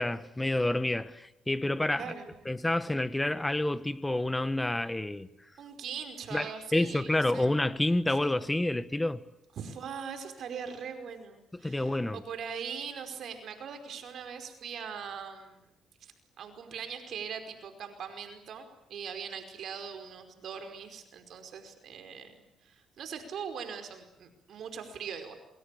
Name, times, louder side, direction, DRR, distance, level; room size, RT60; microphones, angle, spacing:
voice 1, 0.0-2.1 2.4-5.3 6.3-9.2 11.6-12.2, left 1 dB, 10° left, 1.5 m, -29 dB
voice 2, 2.0-2.4 5.6-7.5 8.1-8.3 9.6-15.7 16.0-22.3 22.6-25.3, right 7 dB, 65° right, 5.1 m, -41 dB
27.5 x 24.5 x 8.5 m
cardioid pair, 90°, 0 cm